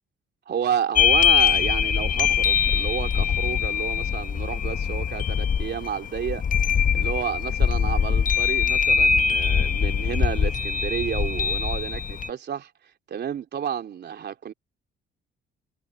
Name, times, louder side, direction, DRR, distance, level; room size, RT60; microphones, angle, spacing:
voice 1, 0.5-12.7 13.1-14.5, right 8 dB, 60° right, 3.4 m, -31 dB
sound 1, 0.9-12.3, left 7 dB, 40° left, 1.0 m, -22 dB
cardioid pair, 90°, 20 cm